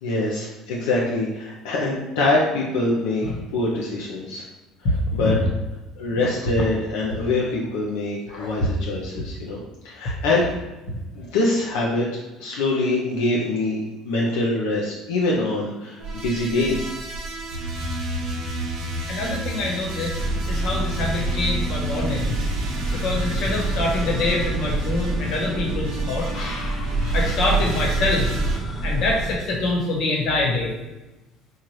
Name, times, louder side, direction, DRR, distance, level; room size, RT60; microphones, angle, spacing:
voice 1, 0.0-3.3 3.5-4.4 5.1-5.3 6.0-9.6 9.8-10.5 11.1-12.1 12.4-16.9, left 2 dB, 90° left, -4 dB, 0.6 m, -24 dB
voice 2, 4.8-5.3 6.2-6.3 8.3-8.5 19.1-20.2 20.5-22.5 22.9-28.4 28.8-30.7, left 2 dB, 60° left, -1 dB, 1.2 m, -25 dB
sound 1, 16.0-28.6, right 2 dB, 70° right, 0.9 m, -29 dB
sound 2, 20.2-29.4, right 1 dB, 20° left, 0.6 m, -29 dB
4.4 x 2.4 x 3.1 m, 1.1 s
supercardioid pair, 105°, 0 cm